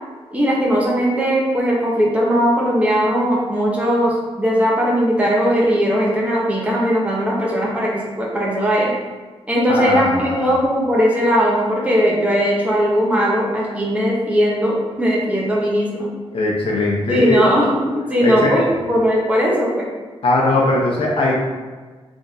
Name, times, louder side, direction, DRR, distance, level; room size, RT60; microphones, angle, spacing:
voice 1, 0.3-8.9 9.5-16.1 17.1-19.9, equal, 10° right, -4 dB, 0.7 m, -18 dB
voice 2, 9.7-10.5 16.3-17.4 18.2-18.5 20.2-21.5, left 2 dB, 60° left, -2 dB, 0.7 m, -19 dB
3.4 x 2.5 x 4.0 m, 1.4 s
wide cardioid pair, 170°, 11 cm